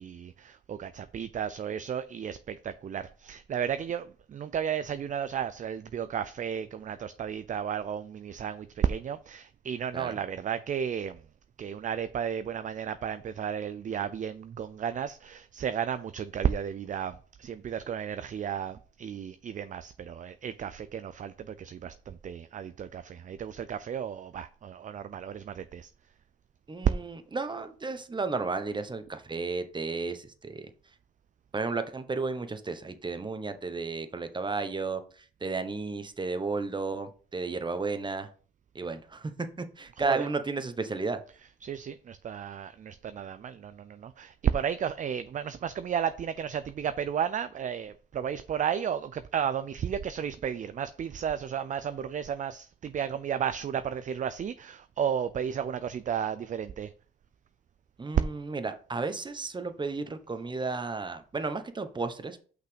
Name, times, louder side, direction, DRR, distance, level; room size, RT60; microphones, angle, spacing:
voice 1, 0.0-11.2 11.6-25.9 40.0-40.3 41.6-56.9, right 8 dB, 40° right, 0.4 m, -33 dB
voice 2, 26.7-30.7 31.5-38.3 38.7-39.3 39.6-41.2 58.0-62.4, right 3 dB, 25° right, 1.1 m, -33 dB
5.9 x 5.8 x 5.1 m
cardioid pair, 90°, 20 cm